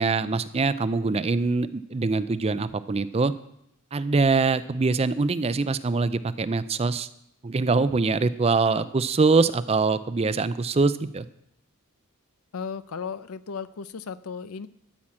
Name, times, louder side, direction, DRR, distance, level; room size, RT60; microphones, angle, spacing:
voice 1, 0.0-3.3 3.9-7.1 7.4-11.3, right 4 dB, 25° right, 14 dB, 0.4 m, -23 dB
voice 2, 12.5-14.7, left 6 dB, 70° left, 15 dB, 0.5 m, -35 dB
13.0 x 5.9 x 8.6 m, 0.76 s
head